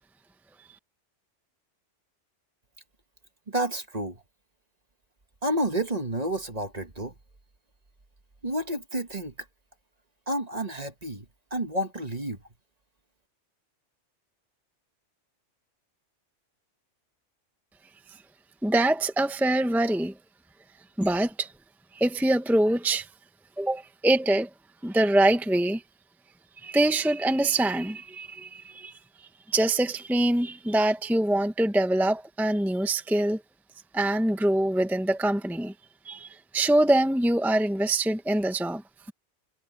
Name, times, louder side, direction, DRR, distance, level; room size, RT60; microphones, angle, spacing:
voice 1, 3.5-4.2 5.4-7.1 8.4-9.3 10.3-12.4, right 1 dB, 35° right, 1.6 m, -30 dB
voice 2, 18.6-20.1 21.0-21.5 21.9-23.1 23.6-24.5 24.8-25.8 26.6-28.9 29.2-33.4 33.9-35.7 36.0-38.8, right 1 dB, ahead, 1.0 m, -24 dB
omnidirectional pair, 1.2 m